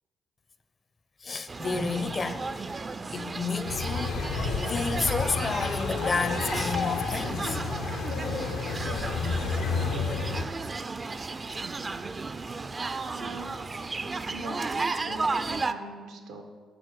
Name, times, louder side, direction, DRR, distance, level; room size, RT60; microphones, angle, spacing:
voice 1, 1.2-2.5 3.1-7.6, left 4 dB, 40° left, 0.6 m, -31 dB
sound 1, 1.5-15.7, right 3 dB, 35° right, 0.4 m, -34 dB
sound 2, 3.6-10.4, left 4 dB, 80° left, 0.7 m, -30 dB
voice 2, 13.1-13.5 14.3-16.4, right 2 dB, 90° right, 1.0 m, -41 dB
9.1 x 4.3 x 6.3 m
supercardioid pair, 60°, 0 cm